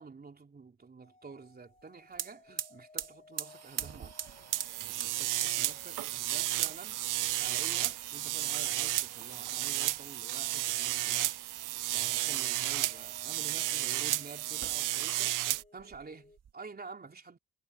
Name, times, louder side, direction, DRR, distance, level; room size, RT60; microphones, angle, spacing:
voice 1, 0.0-4.1 4.8-7.1 7.4-11.3 11.9-17.4, right 4 dB, 30° right, 3.3 m, -49 dB
sound 1, 1.0-7.2 8.4-16.4, left 3 dB, 20° left, 3.6 m, -61 dB
sound 2, 1.8-1.9 2.1-14.0 14.5-15.3 15.5-16.5, right 8 dB, 50° right, 1.9 m, -46 dB
sound 3, 4.5-15.6, right 15 dB, 75° right, 0.8 m, -32 dB
cardioid pair, 90°, 32 cm